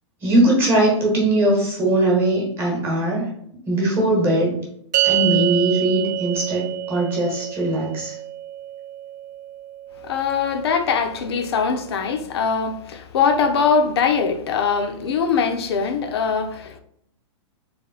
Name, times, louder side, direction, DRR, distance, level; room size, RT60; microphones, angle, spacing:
voice 1, 0.2-3.3 3.7-4.6 5.0-8.2, right 1 dB, 15° right, 1.2 m, -20 dB
sound 1, 4.9-11.5, right 14 dB, 40° right, 0.3 m, -27 dB
voice 2, 10.0-16.8, left 5 dB, 55° left, 0.6 m, -22 dB
3.4 x 3.2 x 3.8 m
hypercardioid pair, 165°, 16 cm